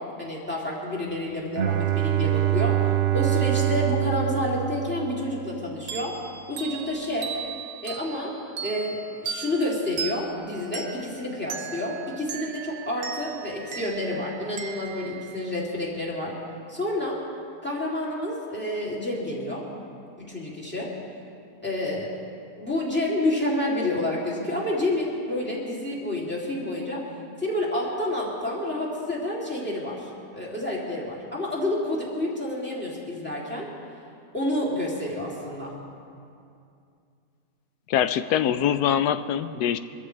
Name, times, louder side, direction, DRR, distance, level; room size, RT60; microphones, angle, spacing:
voice 1, 0.0-2.8 3.1-6.1 6.5-7.3 7.8-8.3 8.6-16.3 16.7-17.2 17.6-19.6 20.2-20.9 21.6-22.2 22.6-27.0 27.4-33.7 34.3-35.8, left 1 dB, 5° left, -5 dB, 3.0 m, -29 dB
Bowed string instrument, 1.6-5.5, right 13 dB, 60° right, 0.8 m, -24 dB
sound 1, 5.9-16.2, right 7 dB, 85° right, 1.4 m, -38 dB
voice 2, 37.9-39.8, left 9 dB, 80° left, 12 dB, 1.1 m, -23 dB
24.0 x 14.0 x 3.4 m, 2.5 s
omnidirectional pair, 1.7 m